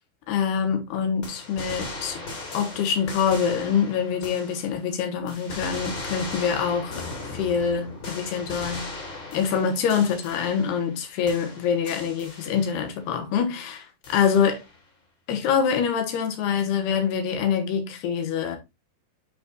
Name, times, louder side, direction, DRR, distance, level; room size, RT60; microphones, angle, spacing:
voice 1, 0.3-2.3 2.5-9.0 9.3-14.6 15.3-18.6, left 7 dB, 75° left, 3.1 m, -25 dB
sound 1, 1.2-4.9 5.3-11.0 11.3-12.9 14.0-14.8, left 2 dB, 35° left, 2.2 m, -38 dB
11.0 x 4.2 x 2.4 m
omnidirectional pair, 4.9 m